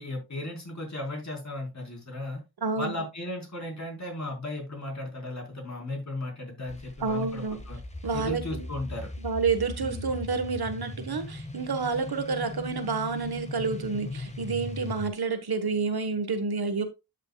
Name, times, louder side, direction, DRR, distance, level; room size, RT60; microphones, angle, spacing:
voice 1, 0.0-2.4 2.7-7.8 8.1-9.1 9.8-10.1, left 2 dB, 45° left, 4.3 m, -36 dB
voice 2, 2.6-2.9 7.0-7.6 8.0-8.7 9.2-16.8, right 4 dB, 75° right, 1.4 m, -29 dB
sound 1, 6.7-15.1, left 2 dB, 15° left, 1.5 m, -39 dB
12.5 x 5.8 x 2.3 m
wide cardioid pair, 75°, 38 cm